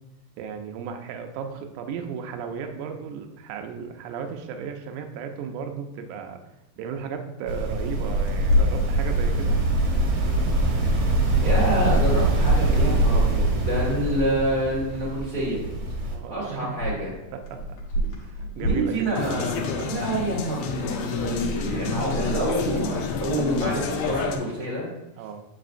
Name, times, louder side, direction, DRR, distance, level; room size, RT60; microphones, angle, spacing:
voice 1, 0.4-6.4 6.8-9.6 16.1-16.7 17.3-17.6 18.2-19.1 25.2-25.4, right 6 dB, 80° right, 5 dB, 2.0 m, -35 dB
sound 1, 7.5-16.2, right 2 dB, 60° right, 1.7 m, -23 dB
Clock, 8.3-18.7, left 2 dB, 65° left, 2.3 m, -32 dB
voice 2, 11.4-15.6 16.3-17.1 18.5-24.8, right 1 dB, 40° left, -6 dB, 0.7 m, -27 dB
sound 2, 19.1-24.4, left 5 dB, 80° left, 1.8 m, -29 dB
7.6 x 5.5 x 2.5 m, 0.96 s
omnidirectional pair, 3.8 m